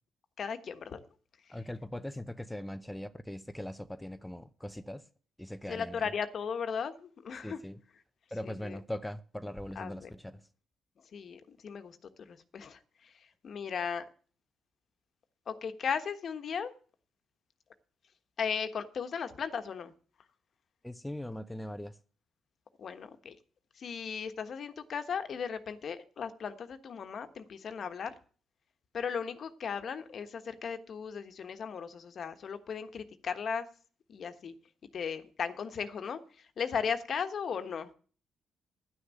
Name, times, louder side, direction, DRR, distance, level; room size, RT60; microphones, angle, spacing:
voice 1, 0.4-1.0 5.7-7.6 8.4-8.8 9.7-10.1 11.1-12.0 12.3-13.1 13.4-14.0 15.5-16.7 18.4-19.9 22.8-23.4 23.8-28.1 28.9-33.7 34.1-34.5 34.9-36.2 36.6-37.9, left 6 dB, 55° left, 1.3 m, -36 dB
voice 2, 1.5-5.0 5.4-6.0 7.4-7.8 8.3-10.4 20.8-22.0, left 1 dB, 5° left, 0.6 m, -40 dB
11.5 x 6.3 x 8.3 m
cardioid pair, 90°, 0 cm